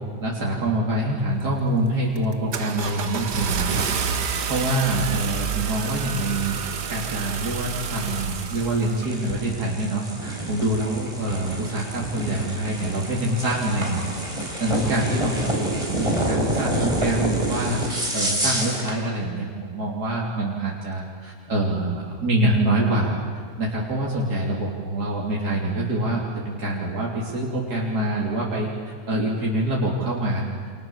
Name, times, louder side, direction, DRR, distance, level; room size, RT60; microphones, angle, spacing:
voice 1, 0.2-6.6 6.9-14.0 14.3-17.8 18.1-23.1 23.6-30.4, right 1 dB, 70° right, -4 dB, 3.8 m, -25 dB
Car / Engine starting, 1.4-1.7 2.2-9.1, right 6 dB, 90° right, 2.0 m, -29 dB
sound 1, 8.0-19.0, right 1 dB, 20° right, 4.2 m, -28 dB
29.5 x 27.0 x 7.3 m, 2.1 s
omnidirectional pair, 1.7 m